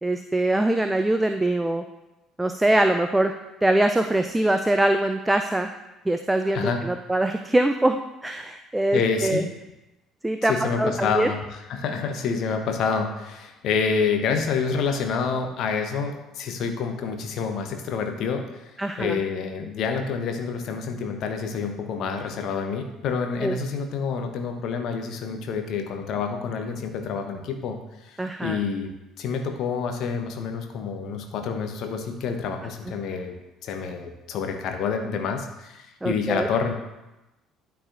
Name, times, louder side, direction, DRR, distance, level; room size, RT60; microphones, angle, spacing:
voice 1, 0.0-1.8 2.4-3.3 3.6-5.7 6.1-9.4 10.2-11.3 18.8-19.2 23.4-23.6 28.2-28.6 36.0-36.5, right 1 dB, 10° right, 7 dB, 0.4 m, -23 dB
voice 2, 8.9-9.5 10.4-28.9 29.2-33.3 33.6-36.7, left 5 dB, 50° left, 5 dB, 0.9 m, -28 dB
12.5 x 4.7 x 2.6 m, 1.0 s
figure-of-eight pair, 55°, 0 cm